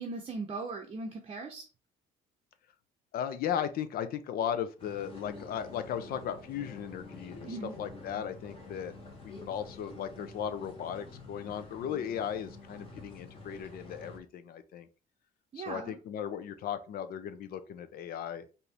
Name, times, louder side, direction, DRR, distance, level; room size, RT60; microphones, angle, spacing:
voice 1, 0.0-1.7 7.4-7.8 15.5-16.0, right 3 dB, 35° right, 2 dB, 0.7 m, -39 dB
voice 2, 3.1-8.9 9.2-14.9 15.6-18.5, left 9 dB, 65° left, 11 dB, 0.6 m, -36 dB
sound 1, 4.8-14.2, left 3 dB, 35° left, 1.5 m, -48 dB
4.4 x 2.7 x 3.3 m, 0.33 s
cardioid pair, 110°, 17 cm